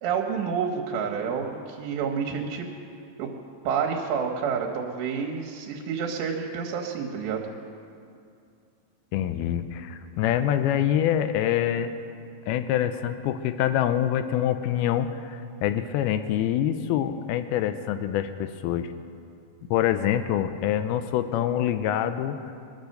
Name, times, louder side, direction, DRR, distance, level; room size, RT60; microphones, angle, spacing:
voice 1, 0.0-2.6 3.2-3.3 3.6-7.5, right 6 dB, 80° right, 1 dB, 3.3 m, -29 dB
voice 2, 9.1-11.9 12.5-18.9 19.7-22.4, left 10 dB, 80° left, 10 dB, 2.3 m, -25 dB
22.0 x 8.1 x 6.5 m, 2.5 s
omnidirectional pair, 4.9 m